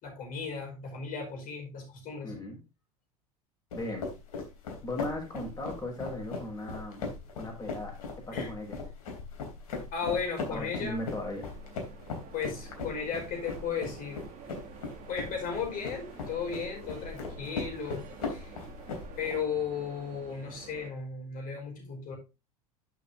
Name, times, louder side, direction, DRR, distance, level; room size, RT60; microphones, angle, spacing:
voice 1, 0.0-2.3 8.3-8.5 9.9-11.0 12.3-14.3 15.1-18.5 19.2-22.1, left 6 dB, 45° left, 2 dB, 5.1 m, -35 dB
voice 2, 2.2-2.6 3.7-4.1 4.8-7.1 7.4-7.9 8.3-8.8 10.0-10.2 10.5-11.5, left 1 dB, 20° left, 1 dB, 6.0 m, -37 dB
sound 1, 3.7-19.4, left 4 dB, 65° left, 3.4 m, -39 dB
sound 2, 10.1-20.9, right 6 dB, 45° right, 2.5 m, -50 dB
11.0 x 7.3 x 2.7 m, 0.26 s
figure-of-eight pair, 75°, 20 cm